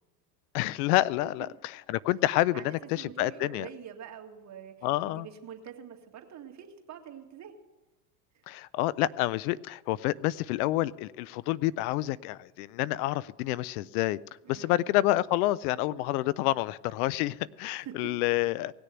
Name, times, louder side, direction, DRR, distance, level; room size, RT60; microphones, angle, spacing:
voice 1, 0.5-3.7 4.8-5.3 8.5-14.2 14.5-18.7, left 16 dB, 65° left, 20 dB, 0.5 m, -28 dB
voice 2, 2.5-7.5 14.4-14.9 17.8-18.1, right 9 dB, 35° right, 2 dB, 2.1 m, -45 dB
18.0 x 6.8 x 8.9 m, 1.1 s
hypercardioid pair, 95°, 49 cm